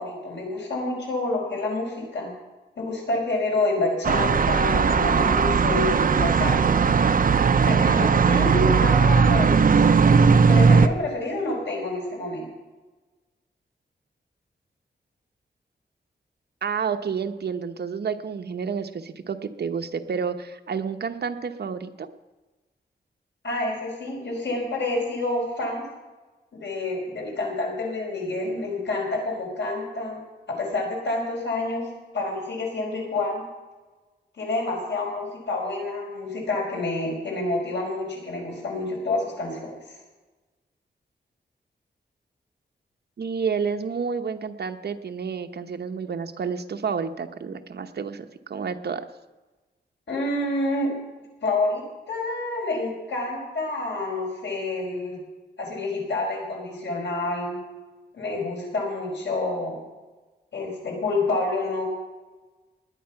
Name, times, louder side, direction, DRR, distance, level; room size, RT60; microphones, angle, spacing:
voice 1, 0.0-2.3 2.8-6.9 7.7-9.8 10.5-12.5 23.4-25.9 26.5-30.2 30.6-33.4 34.4-39.7 50.1-51.0 51.4-55.2 55.6-57.6 58.1-59.8 60.5-61.8, left 2 dB, 90° left, 0 dB, 5.2 m, -28 dB
sound 1, 4.0-10.9, right 5 dB, 50° right, 0.7 m, -18 dB
voice 2, 16.6-22.1 43.2-49.0, right 6 dB, 65° right, 7 dB, 1.0 m, -30 dB
19.5 x 9.7 x 5.8 m, 1.2 s
wide cardioid pair, 115°, 18 cm